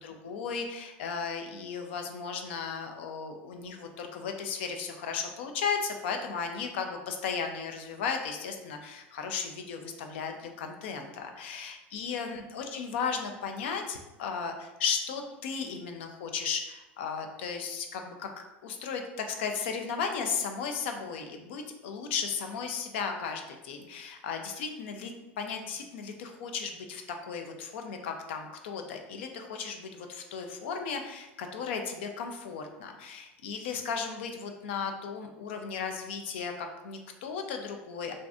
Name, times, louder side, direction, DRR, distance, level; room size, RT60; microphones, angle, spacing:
voice 1, 0.0-25.1 25.4-38.1, left 6 dB, 75° left, 4 dB, 0.4 m, -35 dB
2.5 x 2.4 x 3.4 m, 1.0 s
hypercardioid pair, 85°, 6 cm